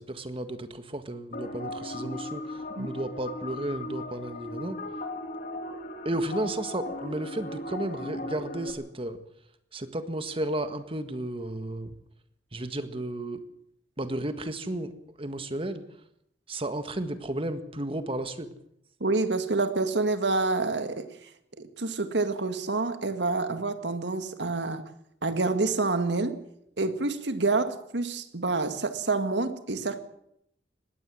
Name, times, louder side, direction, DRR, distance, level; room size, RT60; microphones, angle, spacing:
voice 1, 0.0-4.8 6.1-9.2 9.7-12.0 12.5-13.4 14.0-14.9 15.2-15.8 16.5-18.5, right 1 dB, 30° right, 1.7 m, -33 dB
sound 1, 1.3-8.7, left 1 dB, 50° left, 2.8 m, -37 dB
voice 2, 19.0-21.1 21.6-24.9 25.2-26.4 26.8-30.0, right 3 dB, 85° right, 1.9 m, -27 dB
20.0 x 16.5 x 7.7 m
head